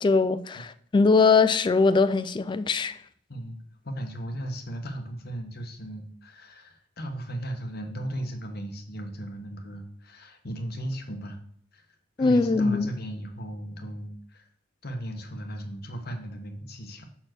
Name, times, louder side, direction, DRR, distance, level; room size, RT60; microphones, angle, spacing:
voice 1, 0.0-3.0 12.2-12.9, left 4 dB, 25° left, 0.3 m, -21 dB
voice 2, 3.8-11.4 11.7-11.8 12.2-14.5 14.8-17.1, right 1 dB, 55° left, 1.2 m, -36 dB
6.6 x 4.4 x 5.9 m
head